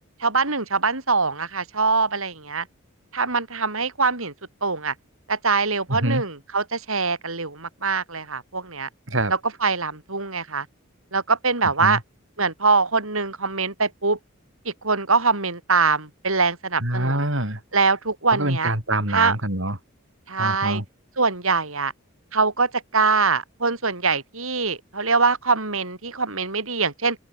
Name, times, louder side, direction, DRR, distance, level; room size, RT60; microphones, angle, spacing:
voice 1, 0.2-2.7 3.1-4.3 4.6-4.9 5.3-8.9 9.3-10.7 11.1-12.0 12.4-14.2 14.7-17.3 17.7-18.7 19.1-19.4 20.3-20.8 21.2-21.9 22.3-27.2, right 4 dB, 80° right, 5.3 m, -23 dB
voice 2, 5.9-6.2 9.1-9.3 11.8-12.0 16.8-17.6 18.3-19.8 20.4-20.8, right 1 dB, 60° right, 7.2 m, -25 dB
open air
head